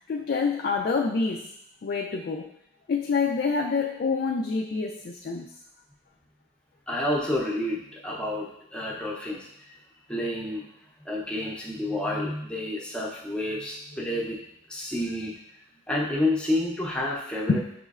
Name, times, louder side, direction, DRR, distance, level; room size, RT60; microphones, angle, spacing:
voice 1, 0.1-1.5 1.8-2.5 2.9-5.5 17.5-17.6, left 4 dB, 50° left, 1 dB, 0.3 m, -27 dB
voice 2, 6.9-9.5 10.1-10.6 11.0-14.4 14.7-15.3 15.9-17.6, left 1 dB, 5° left, -3 dB, 0.6 m, -29 dB
6.5 x 3.1 x 2.4 m, 0.75 s
head